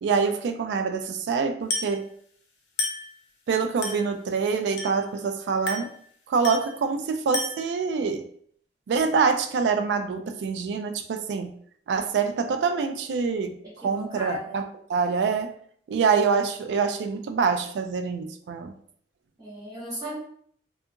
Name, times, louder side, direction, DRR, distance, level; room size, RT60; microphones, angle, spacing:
voice 1, 0.0-2.1 3.5-5.9 6.3-8.3 8.9-11.5 11.9-14.6 14.9-15.5 15.9-18.7, right 5 dB, 75° right, 8 dB, 0.3 m, -25 dB
Glass, 1.7-2.0 2.8-3.1 3.8-4.1 4.8-5.1 5.7-6.0 6.4-6.8 7.3-7.7, left 2 dB, 85° left, 0.7 m, -31 dB
voice 2, 13.6-14.6 19.4-20.2, equal, 20° right, -9 dB, 0.9 m, -36 dB
2.7 x 2.3 x 2.4 m, 0.62 s
head